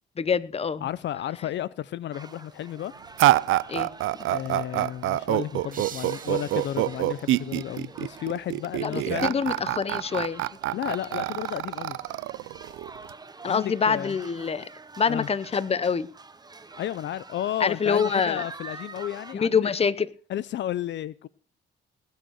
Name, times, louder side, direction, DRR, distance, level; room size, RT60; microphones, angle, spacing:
voice 1, 0.2-0.9 3.7-4.3 8.8-10.4 13.4-14.7 15.0-16.1 17.6-18.4 19.3-20.1, left 6 dB, 30° left, 0.8 m, -26 dB
voice 2, 0.8-2.9 4.3-9.4 10.7-12.0 13.5-14.1 15.1-15.3 16.8-19.7 20.3-21.3, left 12 dB, 65° left, 0.6 m, -32 dB
sound 1, 2.1-19.3, right 3 dB, 20° right, 1.0 m, -46 dB
sound 2, 3.2-13.1, right 16 dB, 85° right, 0.5 m, -26 dB
sound 3, 5.7-8.5, right 7 dB, 45° right, 0.9 m, -46 dB
19.5 x 6.5 x 6.5 m
cardioid pair, 90°, 20 cm